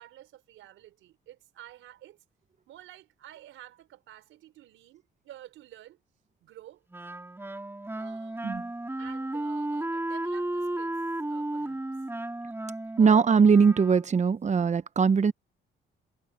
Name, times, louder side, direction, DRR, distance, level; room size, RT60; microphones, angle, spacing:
voice 1, 0.0-2.2 2.7-6.0 6.4-6.8 7.9-8.4 8.9-11.8, right 13 dB, 85° right, 4.6 m, -51 dB
Wind instrument woodwind instrument, 6.9-14.3, right 1 dB, 10° right, 4.8 m, -34 dB
voice 2, 13.0-15.3, right 5 dB, 35° right, 1.0 m, -21 dB
cardioid pair, 90°, 20 cm